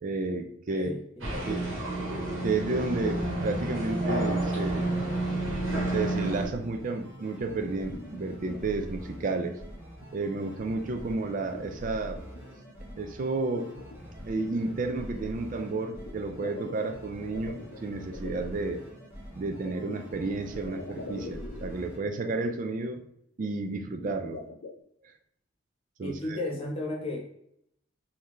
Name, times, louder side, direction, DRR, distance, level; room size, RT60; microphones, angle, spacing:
voice 1, 0.0-0.9 1.5-1.6 2.4-4.9 5.9-9.6 10.1-12.2 13.0-13.7 14.2-18.9 19.3-23.0 23.4-24.4 26.0-26.4, right 3 dB, 40° right, 6 dB, 0.3 m, -31 dB
voice 2, 0.7-1.8 26.0-27.2, left 2 dB, 30° left, 0 dB, 1.0 m, -35 dB
sound 1, 1.2-6.5, right 2 dB, 80° right, 1.3 m, -30 dB
sound 2, 4.3-22.0, equal, 10° right, 1.1 m, -45 dB
sound 3, 7.9-8.8 9.2-9.6 10.0-10.5 10.8-12.4 12.9-13.0 13.3-14.6 15.7-18.8 19.6-22.0 22.4-22.5 22.7-22.8 23.4-24.8, left 3 dB, 75° left, 0.5 m, -45 dB
3.9 x 2.7 x 3.0 m, 0.74 s
head